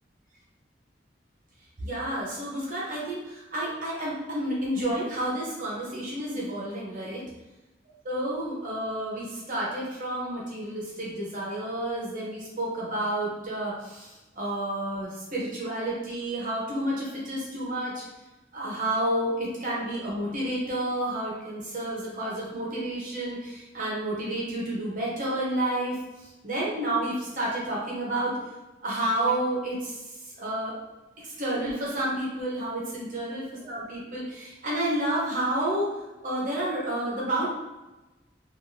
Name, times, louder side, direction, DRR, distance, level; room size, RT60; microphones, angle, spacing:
voice 1, 1.8-7.2 8.0-18.0 18.5-28.3 28.8-30.0 30.4-30.8 31.2-35.9 36.2-37.5, right 1 dB, 45° right, -5 dB, 0.8 m, -30 dB
3.6 x 2.4 x 2.6 m, 1.1 s
head